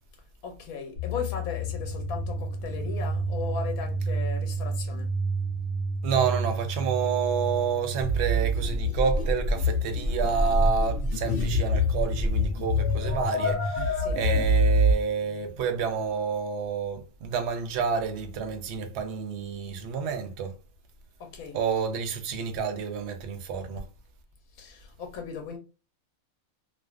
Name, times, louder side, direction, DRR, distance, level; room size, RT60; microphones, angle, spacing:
voice 1, 0.4-5.1 14.0-14.3 21.3-21.6 24.6-25.6, left 6 dB, 90° left, 1.1 m, -37 dB
sound 1, 1.0-8.7, right 3 dB, 55° left, 0.9 m, -31 dB
voice 2, 6.0-20.5 21.5-23.8, right 6 dB, 65° right, 0.7 m, -29 dB
sound 2, 8.0-14.9, left 1 dB, 75° left, 0.5 m, -25 dB
2.4 x 2.4 x 2.3 m
omnidirectional pair, 1.5 m